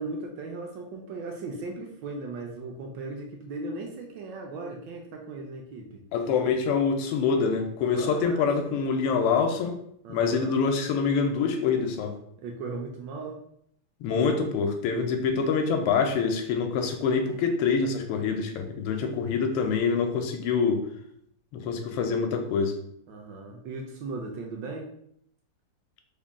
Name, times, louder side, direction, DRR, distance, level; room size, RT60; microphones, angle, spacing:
voice 1, 0.0-6.0 7.9-9.1 10.0-10.6 12.4-13.4 19.0-19.5 23.1-24.9, right 3 dB, 75° right, 1 dB, 1.0 m, -38 dB
voice 2, 6.1-9.8 10.1-12.1 14.0-20.8 21.5-22.8, left 5 dB, 85° left, 5 dB, 1.5 m, -25 dB
3.8 x 2.2 x 3.4 m, 0.71 s
omnidirectional pair, 2.4 m